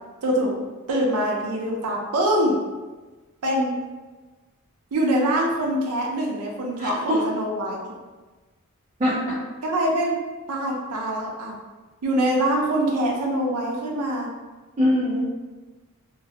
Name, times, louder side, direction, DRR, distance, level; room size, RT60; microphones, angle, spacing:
voice 1, 0.2-0.6 0.9-2.6 3.4-3.8 4.9-7.9 9.6-10.1 10.5-11.6 12.0-14.3, right 1 dB, 85° right, -1 dB, 0.5 m, -24 dB
voice 2, 6.8-7.2 9.0-9.4 14.8-15.3, equal, 30° right, -9 dB, 0.4 m, -22 dB
2.2 x 2.1 x 2.7 m, 1.2 s
head